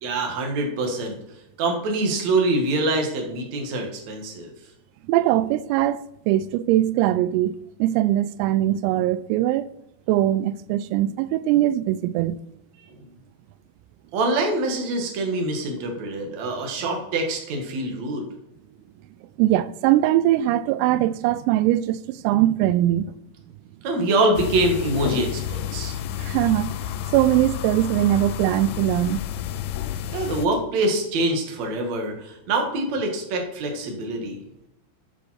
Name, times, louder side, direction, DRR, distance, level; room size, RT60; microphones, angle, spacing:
voice 1, 0.0-1.1 1.6-4.5 14.1-18.3 23.8-26.0 30.1-34.4, right 2 dB, 65° right, 1.8 m, -25 dB
voice 2, 5.1-9.7 10.1-12.4 19.4-23.1 26.2-26.7 27.1-29.2, right 13 dB, 85° right, 3.2 m, -21 dB
sound 1, 24.4-30.5, left 11 dB, 85° left, 2.8 m, -30 dB
13.5 x 8.3 x 4.3 m
omnidirectional pair, 6.0 m